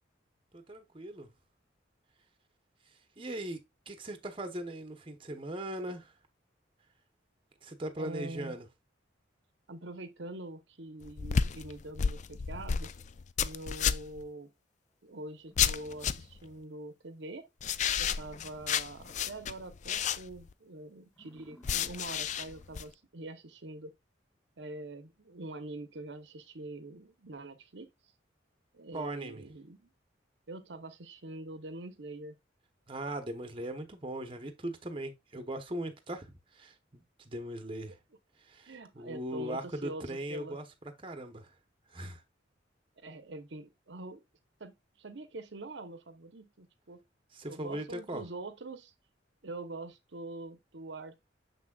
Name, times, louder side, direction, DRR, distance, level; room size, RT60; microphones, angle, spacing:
voice 1, 0.5-1.3 3.2-6.1 7.6-8.7 28.9-29.4 32.9-38.0 38.4-40.6 41.0-41.5 41.9-42.2 47.3-48.2, right 1 dB, 30° right, 0.9 m, -39 dB
voice 2, 7.9-8.6 9.7-12.9 13.4-14.5 15.0-17.5 18.0-23.9 24.6-27.9 28.7-29.9 30.5-32.3 38.7-40.6 43.0-44.2 44.6-47.0 47.5-48.9 49.4-51.2, right 2 dB, 65° right, 0.9 m, -44 dB
sound 1, 11.0-14.2 15.6-16.4 17.6-20.5 21.6-22.8, left 7 dB, 40° left, 0.4 m, -32 dB
sound 2, 14.9-15.0 15.4-16.8 17.2-17.3 17.7-17.8 18.0-19.9 20.2-20.6 21.0-23.1, equal, 10° left, 1.9 m, -63 dB
6.8 x 6.2 x 2.3 m
head